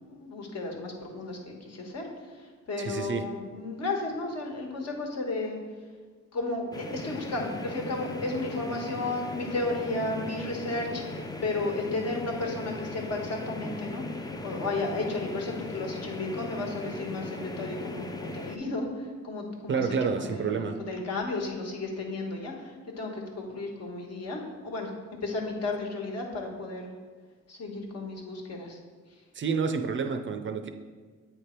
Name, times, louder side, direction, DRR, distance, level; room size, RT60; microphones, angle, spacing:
voice 1, 0.1-2.1 2.4-5.6 6.3-11.0 11.4-14.0 14.4-18.9 19.2-19.9 20.2-24.9 25.2-26.9 27.5-28.8, left 2 dB, 55° left, 1 dB, 1.3 m, -33 dB
voice 2, 2.8-3.3 19.7-20.8 29.3-30.7, right 5 dB, 40° right, 7 dB, 0.5 m, -29 dB
sound 1, 6.7-18.6, left 2 dB, 15° left, 0.4 m, -38 dB
8.2 x 3.3 x 4.4 m, 1.5 s
cardioid pair, 90°, 30 cm